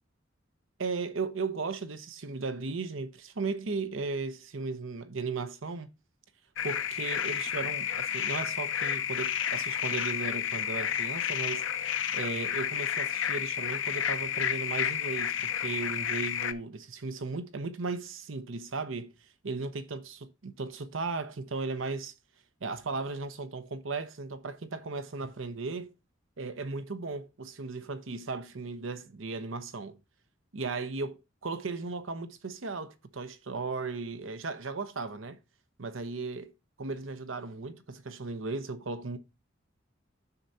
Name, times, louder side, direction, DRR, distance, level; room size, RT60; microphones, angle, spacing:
voice 1, 0.8-5.9 6.6-11.6 12.1-19.1 19.4-22.1 22.6-25.9 26.4-30.0 30.5-35.4 35.8-36.5 36.8-39.2, right 4 dB, 85° right, 0.9 m, -36 dB
sound 1, 6.6-16.5, left 9 dB, 70° left, 0.7 m, -31 dB
9.5 x 6.7 x 2.7 m
head